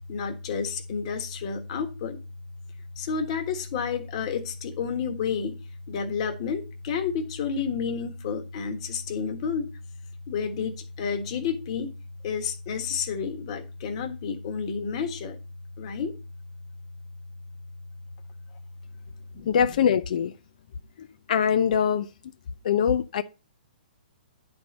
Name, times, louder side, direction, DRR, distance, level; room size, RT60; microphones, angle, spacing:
voice 1, 0.1-2.2 3.0-5.6 5.9-9.7 10.3-11.9 12.2-15.4 15.8-16.1 19.3-19.5, left 6 dB, 40° left, 1.5 m, -30 dB
voice 2, 19.5-20.3 21.0-22.1 22.6-23.2, left 8 dB, 55° left, 0.5 m, -23 dB
10.5 x 4.5 x 5.2 m
hypercardioid pair, 155°, 5 cm